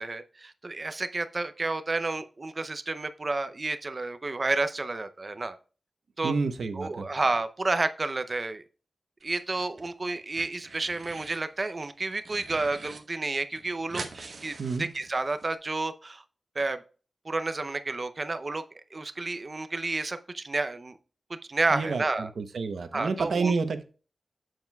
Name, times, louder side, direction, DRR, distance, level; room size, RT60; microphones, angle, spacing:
voice 1, 0.0-5.6 6.2-6.3 6.8-8.6 9.2-14.5 14.8-16.2 16.6-16.8 17.2-18.6 18.9-21.0 21.5-22.3 22.9-23.5, right 3 dB, 35° right, 10 dB, 0.6 m, -30 dB
voice 2, 6.2-7.1 14.6-14.9 21.7-23.8, right 4 dB, 80° right, 9 dB, 0.8 m, -29 dB
sound 1, 9.2-9.9 10.2-11.4 11.8-13.0 13.3-13.4 13.6-15.5, right 3 dB, 60° right, 1.1 m, -43 dB
7.7 x 7.0 x 2.3 m, 0.36 s
wide cardioid pair, 140°, 0 cm